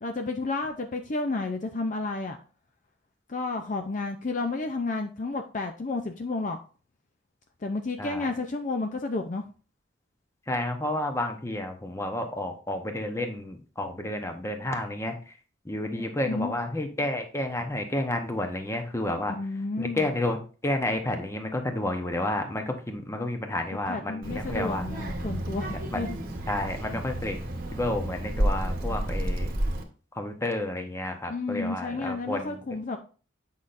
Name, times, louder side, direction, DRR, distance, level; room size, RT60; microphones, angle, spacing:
voice 1, 0.0-2.4 3.3-6.6 7.6-9.4 15.9-16.5 19.3-20.1 23.9-26.2 31.3-33.0, left 3 dB, 40° left, 5 dB, 0.5 m, -31 dB
voice 2, 10.5-15.1 15.7-19.3 19.8-24.9 25.9-26.0 26.5-27.4 27.7-29.5 30.2-32.6, left 1 dB, 15° left, 5 dB, 0.9 m, -30 dB
Child speech kid speaking, 24.2-29.8, right 1 dB, 50° right, 1.0 m, -31 dB
8.4 x 5.6 x 2.6 m, 0.38 s
head